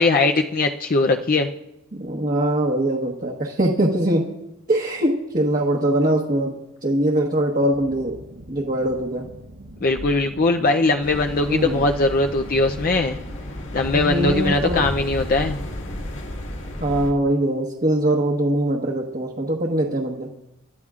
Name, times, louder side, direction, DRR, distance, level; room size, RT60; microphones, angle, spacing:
voice 1, 0.0-1.5 9.8-13.2 13.7-15.6, left 3 dB, 40° left, 4 dB, 0.5 m, -20 dB
voice 2, 2.0-4.3 4.7-6.5 6.8-8.2 8.5-9.3 11.5-11.8 13.9-14.9 16.8-20.3, right 1 dB, 40° right, -1 dB, 1.2 m, -22 dB
sound 1, 7.7-17.3, right 1 dB, 70° right, 1.3 m, -43 dB
sound 2, 11.0-17.1, left 1 dB, 60° left, 2.0 m, -32 dB
28.0 x 13.0 x 2.5 m, 0.90 s
head